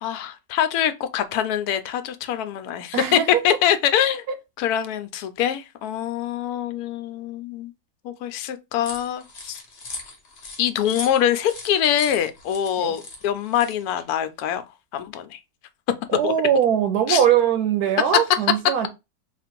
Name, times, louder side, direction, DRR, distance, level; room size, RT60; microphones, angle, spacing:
voice 1, 0.0-4.2 4.6-7.7 8.0-9.6 10.6-14.6 14.9-15.4 16.2-16.3 17.1-17.2, left 10 dB, 80° left, 1.0 m, -24 dB
voice 2, 2.9-3.4 12.8-13.0 16.1-18.9, right 9 dB, 90° right, 1.2 m, -21 dB
sound 1, 8.8-14.1, left 3 dB, 45° left, 1.0 m, -39 dB
3.1 x 2.5 x 4.3 m
omnidirectional pair, 1.6 m